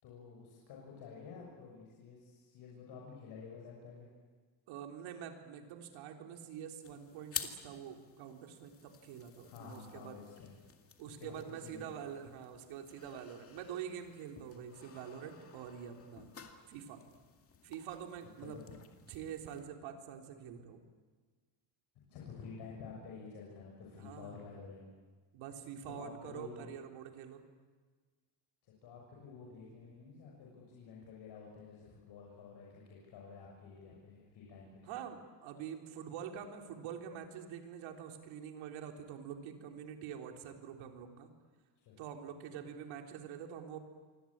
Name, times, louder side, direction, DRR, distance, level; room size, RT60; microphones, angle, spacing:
voice 1, 0.0-4.1 9.4-10.5 11.0-11.4 11.6-11.9 18.5-18.6 22.1-24.9 25.9-26.6 28.8-34.9 41.8-42.0, left 5 dB, 60° left, -3 dB, 6.7 m, -50 dB
voice 2, 4.7-10.2 11.0-16.3 16.7-17.0 17.6-18.6 19.1-20.8 24.0-24.4 25.3-27.4 34.8-41.3 42.0-43.8, right 8 dB, 85° right, 4 dB, 3.7 m, -46 dB
sound 1, 6.8-19.6, left 7 dB, 30° left, 2.2 m, -51 dB
27.0 x 24.5 x 8.8 m, 1.5 s
cardioid pair, 165°, 46 cm